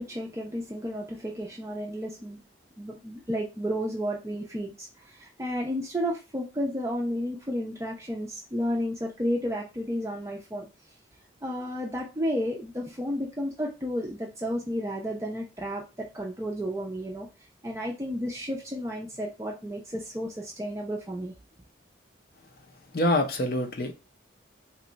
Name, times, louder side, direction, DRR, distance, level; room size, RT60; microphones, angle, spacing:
voice 1, 0.0-2.4 2.8-10.7 11.4-17.3 17.6-21.3, equal, 15° right, 0.4 m, -32 dB
voice 2, 22.9-23.9, left 1 dB, 50° left, 0.6 m, -25 dB
3.0 x 2.3 x 3.9 m
head